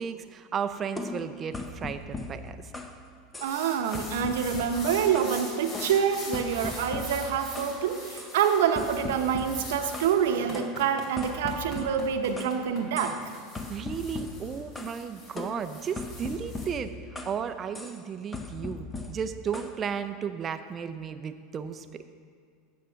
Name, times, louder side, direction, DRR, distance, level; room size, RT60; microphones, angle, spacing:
voice 1, 0.0-2.6 13.7-16.9 17.2-22.1, right 7 dB, 30° right, 9 dB, 0.6 m, -34 dB
sound 1, 1.0-3.0 3.3-3.7 3.9-5.4 5.7-7.8 8.2-8.4 8.8-10.2 10.5-12.6 13.0-13.3 13.6-15.0 15.4-17.4 17.7-18.0 18.3-19.8, left 3 dB, 15° left, 0.9 m, -39 dB
voice 2, 3.4-13.2, right 8 dB, 80° right, 6 dB, 0.9 m, -26 dB
sound 2, 3.5-16.6, left 2 dB, 40° left, 2.9 m, -43 dB
9.3 x 7.4 x 5.8 m, 2.2 s
supercardioid pair, 115°, 0 cm